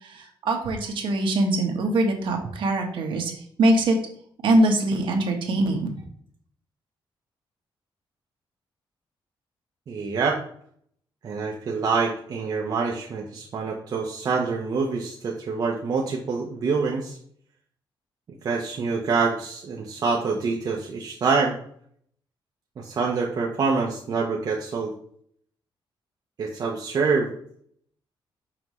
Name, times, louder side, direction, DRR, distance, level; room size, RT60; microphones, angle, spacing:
voice 1, 0.1-3.3 3.6-4.0 4.4-5.9, right 1 dB, 65° right, 2 dB, 1.2 m, -22 dB
voice 2, 9.9-10.4 11.2-17.2 18.4-21.6 22.8-24.9 26.4-27.3, right 4 dB, 45° right, -1 dB, 0.8 m, -26 dB
5.7 x 5.4 x 3.1 m, 0.62 s
wide cardioid pair, 160°, 9 cm